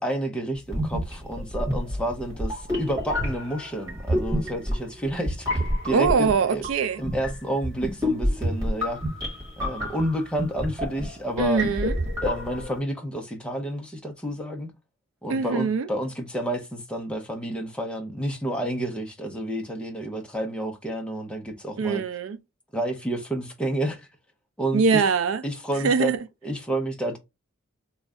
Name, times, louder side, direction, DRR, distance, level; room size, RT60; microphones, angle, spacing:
voice 1, 0.0-6.7 7.0-9.0 9.6-11.6 12.2-14.7 15.2-22.0 22.7-24.1 24.6-25.0 25.4-26.1 26.4-27.2, right 1 dB, 5° left, 0.6 m, -30 dB
sound 1, 0.6-12.8, equal, 15° right, 1.7 m, -29 dB
voice 2, 5.9-7.0 11.4-12.0 15.3-15.9 21.8-22.4 24.7-25.4 25.8-26.2, right 5 dB, 70° right, 0.4 m, -23 dB
3.1 x 2.3 x 3.6 m
head